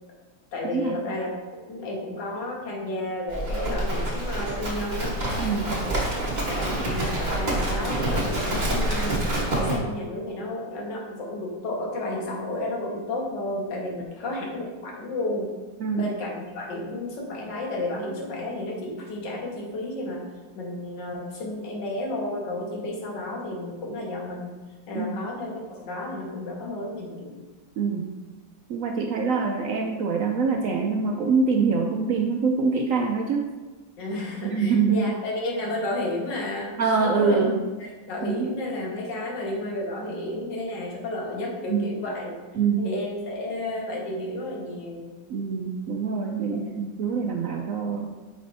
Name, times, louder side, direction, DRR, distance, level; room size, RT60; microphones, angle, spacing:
voice 1, 0.5-1.3 1.7-5.2 6.5-15.5 15.9-20.3 20.6-24.5 24.9-27.4 34.0-37.5 38.0-42.4 42.8-45.2 46.5-46.8, left 1 dB, 85° left, -1 dB, 1.9 m, -32 dB
Livestock farm animals working animals, 3.3-9.8, right 1 dB, 30° right, 1.1 m, -27 dB
voice 2, 5.4-5.8 6.7-6.9 15.8-16.1 24.9-25.2 27.8-28.1 28.7-33.5 34.4-35.1 36.8-37.6 38.2-38.5 41.7-41.9 42.6-42.9 45.3-48.2, right 5 dB, 75° right, 2 dB, 0.8 m, -25 dB
8.8 x 5.0 x 2.6 m, 1.2 s
omnidirectional pair, 1.9 m